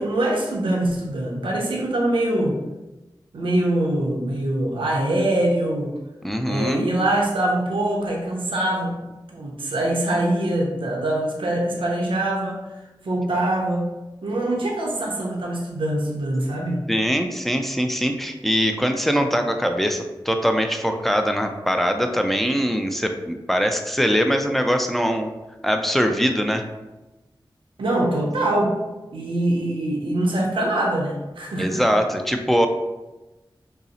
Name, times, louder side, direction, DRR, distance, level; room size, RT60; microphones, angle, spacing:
voice 1, 0.0-2.6 3.3-5.9 6.5-9.0 9.3-13.9 14.2-16.8 27.8-28.8 29.1-31.8, right 1 dB, 90° right, -2 dB, 0.6 m, -23 dB
voice 2, 6.2-6.9 16.9-25.3 25.6-26.6 31.6-32.7, equal, ahead, 5 dB, 0.4 m, -22 dB
5.3 x 2.0 x 2.8 m, 1.1 s
wide cardioid pair, 65°, 9 cm